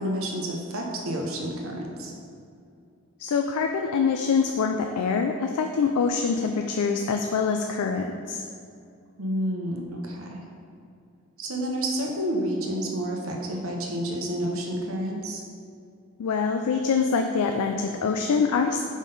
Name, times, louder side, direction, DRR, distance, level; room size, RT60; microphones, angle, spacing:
voice 1, 0.0-2.1 9.2-10.5 11.4-15.4, right 1 dB, 70° right, 0 dB, 0.9 m, -30 dB
voice 2, 3.2-8.4 16.2-18.8, left 5 dB, 90° left, 4 dB, 0.4 m, -25 dB
5.1 x 3.8 x 5.3 m, 2.4 s
head